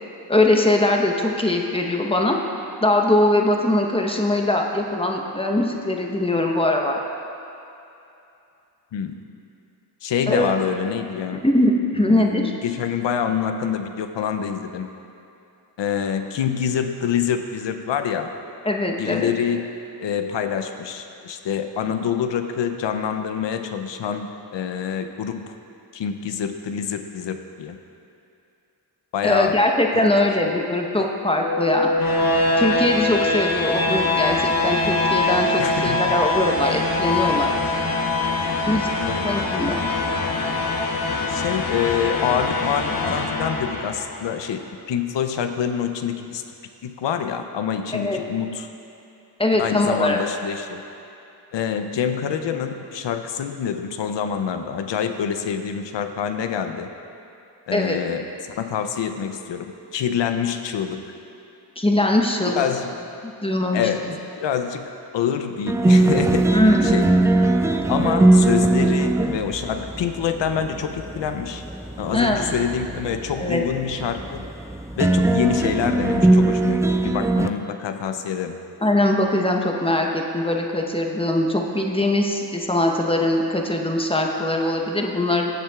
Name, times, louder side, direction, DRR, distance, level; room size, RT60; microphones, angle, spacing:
voice 1, 0.3-2.4 2.8-7.0 10.3-10.5 11.3-12.5 18.6-19.3 29.2-31.9 32.6-37.5 38.7-38.9 39.2-39.8 47.9-48.2 49.4-50.2 57.7-58.0 61.8-62.6 63.2-64.1 66.5-66.9 72.1-72.5 73.4-73.6 78.8-85.5, left 1 dB, 15° left, 1 dB, 0.9 m, -21 dB
voice 2, 10.0-11.4 12.0-14.9 15.8-18.3 19.0-19.7 20.0-25.5 25.9-27.8 29.1-29.6 29.9-30.0 31.0-31.1 35.6-36.1 39.0-39.3 41.3-46.4 46.8-48.7 49.6-50.8 51.5-56.9 57.7-61.1 62.5-62.9 63.7-64.1 64.3-67.1 67.9-71.6 72.0-74.5 75.0-78.6, left 8 dB, 85° left, 7 dB, 0.6 m, -26 dB
sound 1, 31.3-44.3, left 2 dB, 55° left, 1.1 m, -23 dB
sound 2, 65.7-77.5, right 2 dB, 5° right, 0.3 m, -21 dB
15.5 x 7.5 x 2.4 m, 2.8 s
cardioid pair, 60°, 43 cm